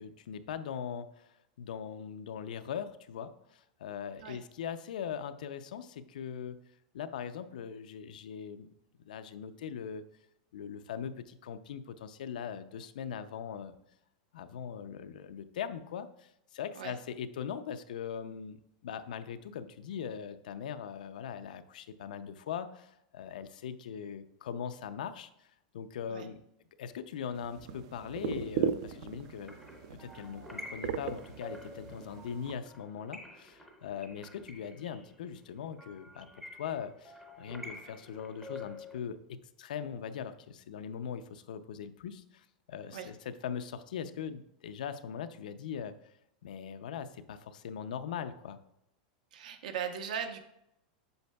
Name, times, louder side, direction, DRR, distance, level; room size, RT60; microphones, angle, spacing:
voice 1, 0.0-6.6 6.9-8.7 9.0-10.0 10.5-13.8 14.3-25.5 25.7-26.4 26.8-29.6 29.9-45.9 46.4-48.6, left 8 dB, 90° left, 10 dB, 0.5 m, -41 dB
sound 1, 27.3-32.5, right 8 dB, 45° right, 0.4 m, -38 dB
sound 2, 29.2-39.0, left 1 dB, 5° right, 0.6 m, -49 dB
voice 2, 49.3-50.4, right 7 dB, 75° right, 7 dB, 0.9 m, -38 dB
7.9 x 6.4 x 2.3 m, 0.80 s
supercardioid pair, 175°, 4 cm